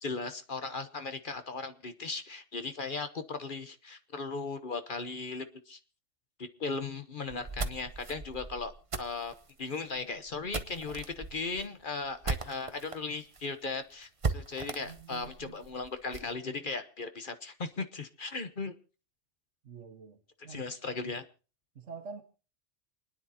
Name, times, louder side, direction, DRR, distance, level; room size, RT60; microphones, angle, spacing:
voice 1, 0.0-5.8 6.4-8.7 9.0-9.3 9.6-18.7 20.5-21.2, left 4 dB, 45° left, 1.0 m, -37 dB
sound 1, 7.3-13.0 13.3-13.4 13.7-13.8 14.2-16.3, right 4 dB, 30° right, 0.9 m, -38 dB
voice 2, 14.8-15.6 19.6-20.8 21.8-22.2, right 5 dB, 70° right, 1.7 m, -47 dB
28.5 x 10.0 x 2.8 m
omnidirectional pair, 1.3 m